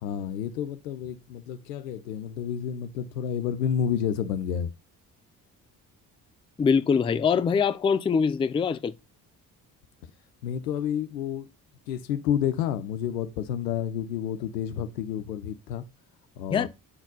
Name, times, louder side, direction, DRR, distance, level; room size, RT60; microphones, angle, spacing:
voice 1, 0.0-4.7 10.4-11.5 11.9-15.8 16.4-16.7, left 9 dB, 80° left, 0.7 m, -30 dB
voice 2, 6.6-8.9 16.5-16.7, left 6 dB, 10° left, 0.3 m, -23 dB
7.7 x 4.1 x 3.9 m
figure-of-eight pair, 45°, 48 cm